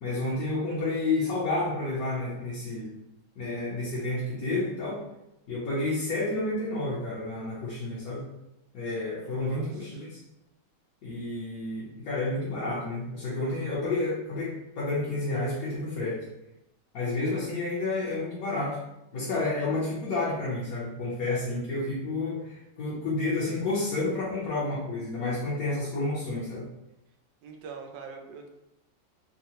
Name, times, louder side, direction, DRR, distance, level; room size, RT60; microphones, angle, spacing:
voice 1, 0.0-2.9 3.4-5.0 5.5-8.2 8.7-10.2 11.0-16.2 16.9-18.8 19.1-26.7, left 2 dB, 60° left, -6 dB, 1.1 m, -30 dB
voice 2, 9.2-10.1 27.4-28.5, right 5 dB, 90° right, 3 dB, 1.3 m, -44 dB
3.8 x 2.0 x 2.8 m, 0.88 s
omnidirectional pair, 1.9 m